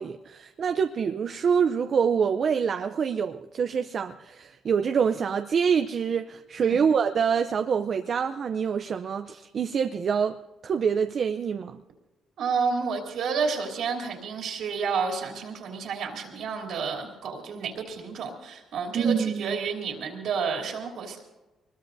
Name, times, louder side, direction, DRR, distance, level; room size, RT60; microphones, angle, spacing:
voice 1, 0.0-10.4 10.6-11.8 18.9-19.6, right 6 dB, 55° right, 0.6 m, -26 dB
voice 2, 12.4-21.2, right 5 dB, 75° right, 3.1 m, -30 dB
23.5 x 21.0 x 2.7 m
cardioid pair, 90°, 0 cm